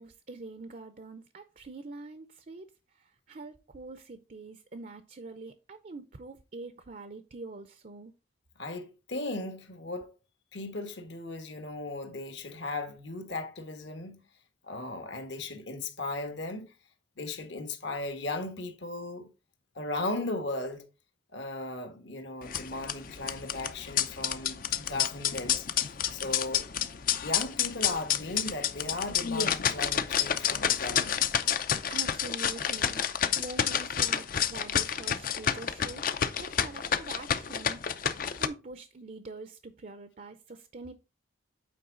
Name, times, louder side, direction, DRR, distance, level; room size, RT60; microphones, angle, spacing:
voice 1, 0.0-8.1 31.6-36.1 36.4-40.9, right 3 dB, 40° right, 0.5 m, -45 dB
voice 2, 8.6-10.1 10.5-14.3 14.6-16.7 17.2-19.3 19.7-20.9 21.3-25.6 26.1-26.9 27.2-31.3, left 2 dB, 65° left, 1.3 m, -37 dB
sound 1, 22.4-38.5, left 8 dB, 45° left, 0.5 m, -29 dB
8.6 x 4.6 x 3.8 m
head